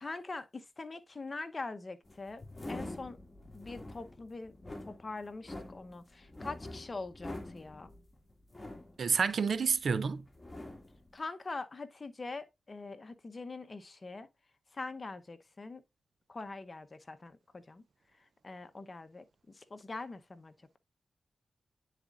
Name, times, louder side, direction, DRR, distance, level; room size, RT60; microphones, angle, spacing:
voice 1, 0.0-3.2 3.5-7.9 11.1-14.3 14.7-15.8 16.3-17.8 18.4-19.2 19.6-20.8, left 3 dB, 40° left, 0.8 m, -43 dB
sound 1, 2.0-9.9 10.3-11.1, left 1 dB, 20° left, 1.9 m, -46 dB
voice 2, 9.0-10.2, right 5 dB, 65° right, 0.5 m, -29 dB
9.7 x 4.2 x 2.4 m
cardioid pair, 50°, 0 cm